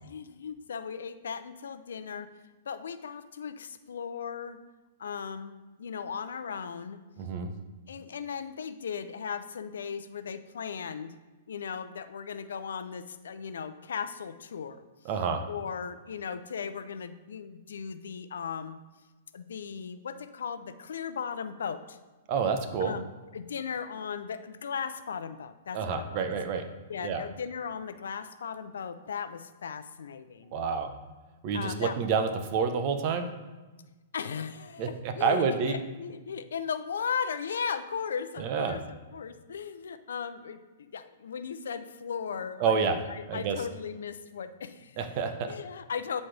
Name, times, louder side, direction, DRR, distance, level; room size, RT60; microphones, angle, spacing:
voice 1, 0.0-2.3 2.7-4.6 5.0-7.0 7.9-11.1 11.5-14.8 15.5-18.8 19.3-22.0 22.8-23.1 23.3-26.3 26.9-30.6 31.5-32.0 34.1-45.0 45.5-46.2, left 6 dB, 85° left, 11 dB, 0.6 m, -37 dB
voice 2, 7.2-7.5 15.0-15.4 22.3-22.9 25.7-26.6 27.0-27.2 30.5-30.9 31.4-33.3 34.8-35.8 38.4-38.8 42.6-43.0 43.3-43.6 45.0-45.5, right 5 dB, 45° right, 7 dB, 0.9 m, -28 dB
11.5 x 4.2 x 3.4 m, 1.2 s
hypercardioid pair, 140°, 0 cm